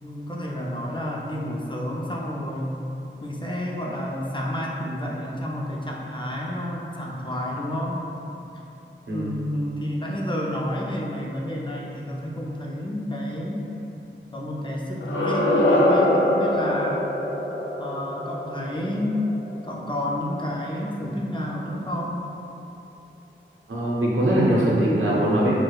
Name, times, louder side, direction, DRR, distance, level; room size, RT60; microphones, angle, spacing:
voice 1, 0.0-2.7 3.2-8.0 9.1-13.6 14.3-17.1 17.8-19.3 19.6-22.2, left 1 dB, 25° left, -3 dB, 0.5 m, -30 dB
sound 1, 15.0-19.9, left 1 dB, 85° left, 0.4 m, -23 dB
voice 2, 23.7-25.6, right 1 dB, 85° right, -6 dB, 0.7 m, -21 dB
4.6 x 2.1 x 2.3 m, 2.8 s
wide cardioid pair, 45°, 20 cm